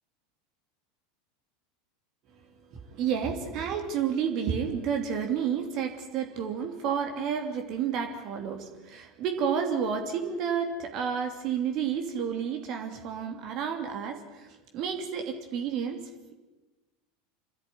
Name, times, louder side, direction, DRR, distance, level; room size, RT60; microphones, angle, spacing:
voice 1, 2.7-14.5 14.7-16.3, right 7 dB, 45° right, 4 dB, 2.9 m, -31 dB
26.5 x 13.0 x 9.8 m, 1.1 s
figure-of-eight pair, 80°, 0 cm